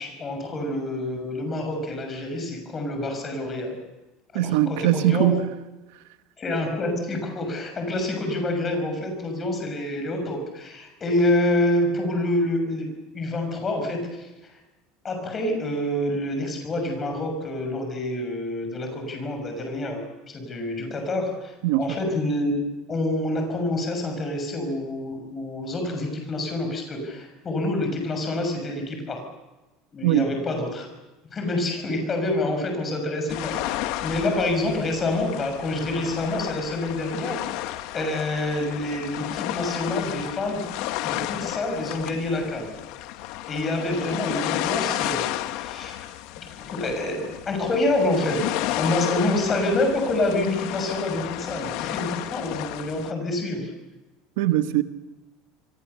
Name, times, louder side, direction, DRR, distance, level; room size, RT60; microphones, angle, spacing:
voice 1, 0.0-3.8 4.3-5.4 6.4-12.9 13.1-14.3 15.0-22.6 22.9-29.2 29.9-30.9 31.3-40.6 41.0-42.7 43.3-46.1 46.6-53.7, left 1 dB, 20° left, 6.5 m, -27 dB
voice 2, 4.3-5.5 21.6-21.9 30.0-30.3 54.4-54.8, right 14 dB, 80° right, 1.3 m, -21 dB
sound 1, 33.3-53.1, left 15 dB, 60° left, 1.3 m, -32 dB
27.5 x 23.0 x 6.9 m
cardioid pair, 165°, 0 cm